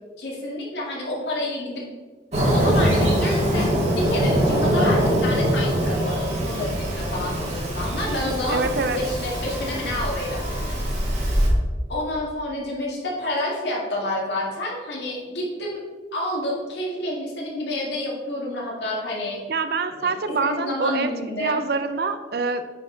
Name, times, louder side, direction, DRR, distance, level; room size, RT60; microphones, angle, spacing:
voice 1, 0.2-1.8 2.3-8.7 8.9-10.4 11.9-15.8 16.1-19.4 20.0-20.1 20.4-21.6, left 1 dB, 75° left, -3 dB, 1.9 m, -29 dB
Fireworks, 2.3-11.5, equal, 40° right, 1.6 m, -23 dB
voice 2, 8.5-9.0 19.5-21.1 21.4-22.6, right 4 dB, 60° right, 9 dB, 0.5 m, -25 dB
9.0 x 4.2 x 3.8 m, 1.3 s
head